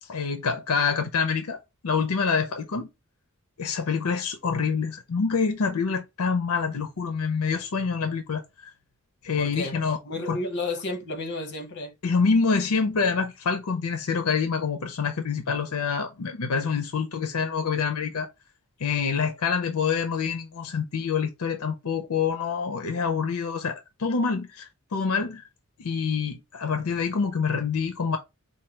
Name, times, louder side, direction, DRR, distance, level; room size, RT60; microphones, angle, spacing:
voice 1, 0.0-2.9 3.6-8.7 9.2-10.0 10.3-10.4 12.0-18.3 18.8-25.4 25.8-28.2, left 5 dB, 80° left, 0.6 m, -26 dB
voice 2, 9.4-11.9, left 2 dB, 50° left, 1.1 m, -32 dB
4.4 x 2.3 x 4.4 m
head